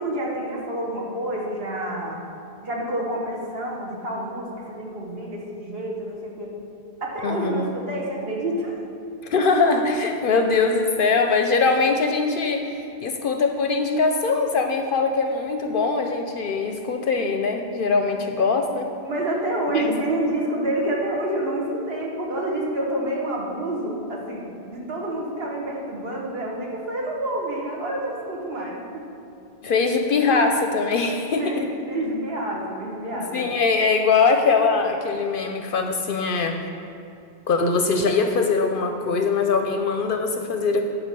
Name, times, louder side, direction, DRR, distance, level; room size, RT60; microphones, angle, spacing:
voice 1, 0.0-2.2 2.6-6.6 7.0-8.8 19.0-29.0 31.4-33.4, right 1 dB, 60° right, -2 dB, 1.5 m, -28 dB
voice 2, 7.2-7.7 9.2-18.9 19.7-19.8 29.6-31.7 33.3-36.6 37.5-40.8, left 4 dB, 60° left, 5 dB, 0.6 m, -22 dB
8.9 x 4.5 x 6.7 m, 2.7 s
omnidirectional pair, 1.1 m